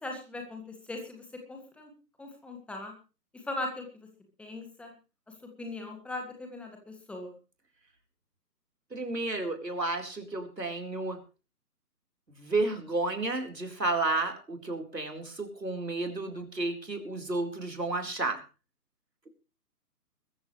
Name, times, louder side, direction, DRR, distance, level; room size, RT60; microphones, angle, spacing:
voice 1, 0.0-1.9 2.2-2.9 3.3-4.1 4.4-4.9 5.6-7.4, left 2 dB, ahead, 2 dB, 1.9 m, -39 dB
voice 2, 8.9-11.2 12.4-18.4, right 2 dB, 85° right, 3 dB, 4.5 m, -32 dB
22.0 x 14.0 x 3.3 m, 0.33 s
figure-of-eight pair, 140°, 49 cm